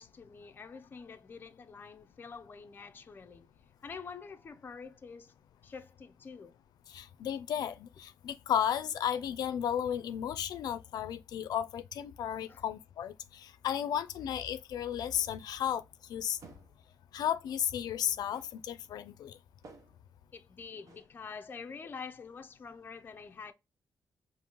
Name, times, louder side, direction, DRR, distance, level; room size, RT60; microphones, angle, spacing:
voice 1, 0.0-3.5 3.8-5.3 5.6-6.6 12.5-12.6 20.3-23.5, left 5 dB, 30° left, 0.4 m, -47 dB
voice 2, 6.9-15.8 16.1-16.4 17.1-19.4, left 9 dB, 85° left, 0.4 m, -34 dB
sound 1, 15.1-15.5 16.4-16.9 18.3-18.7 19.6-20.1 20.9-21.2, right 3 dB, 55° right, 0.8 m, -55 dB
5.2 x 2.5 x 2.9 m
wide cardioid pair, 145°, 7 cm